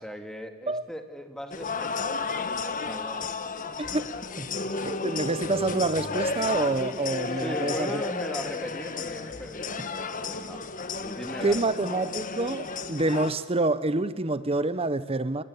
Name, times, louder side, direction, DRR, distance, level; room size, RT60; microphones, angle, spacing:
voice 1, 0.0-2.5 2.8-3.3 7.3-10.6 11.0-11.7, equal, 5° left, 2.0 m, -38 dB
sound 1, 1.5-13.3, left 4 dB, 40° left, 1.4 m, -33 dB
voice 2, 4.8-8.0 11.4-15.4, right 2 dB, 30° right, 0.9 m, -27 dB
29.0 x 22.0 x 8.4 m
head